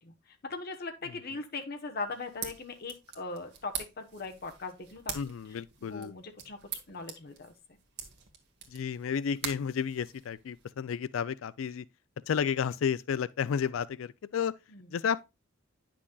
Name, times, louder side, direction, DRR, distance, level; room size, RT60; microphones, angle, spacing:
voice 1, 0.0-5.2 5.5-6.6 6.9-7.5 14.7-14.9, left 3 dB, 50° left, 1.1 m, -40 dB
sound 1, 2.1-10.6, right 7 dB, 60° right, 1.5 m, -44 dB
voice 2, 5.1-6.1 8.7-11.9 12.3-14.5 14.9-15.2, left 7 dB, 85° left, 0.4 m, -32 dB
9.8 x 6.1 x 2.3 m
head